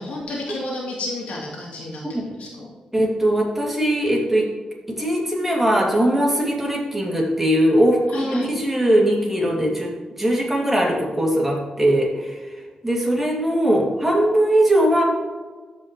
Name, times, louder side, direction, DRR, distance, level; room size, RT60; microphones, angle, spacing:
voice 1, 0.0-2.7 8.1-8.5, left 2 dB, 80° left, -4 dB, 2.6 m, -31 dB
voice 2, 2.9-4.4 5.0-9.9 10.2-12.4 12.8-15.0, right 1 dB, 10° right, -3 dB, 2.5 m, -20 dB
13.5 x 5.5 x 3.1 m, 1.4 s
cardioid pair, 100°, 2 cm